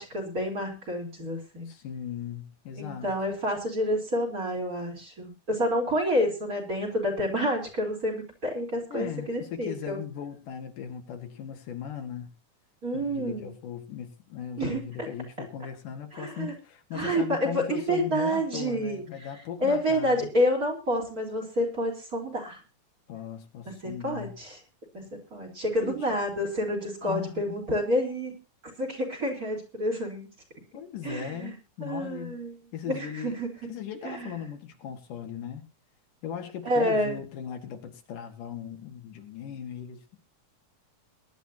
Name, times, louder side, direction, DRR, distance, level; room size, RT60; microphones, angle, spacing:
voice 1, 0.0-1.7 2.8-10.0 12.8-13.5 14.6-15.1 16.1-16.5 16.9-19.0 19.6-22.6 23.7-24.6 24.9-25.0 25.3-28.3 28.8-30.3 31.0-31.5 31.8-32.6 32.8-33.5 34.0-34.3 36.6-37.2, equal, 25° right, 4.4 m, -29 dB
voice 2, 1.7-3.1 8.9-12.3 12.9-20.3 23.1-24.3 25.8-26.1 27.0-27.6 30.7-32.4 32.7-33.4 33.7-35.6 36.2-40.2, left 8 dB, 80° left, 3.5 m, -38 dB
22.5 x 11.5 x 2.9 m
omnidirectional pair, 3.6 m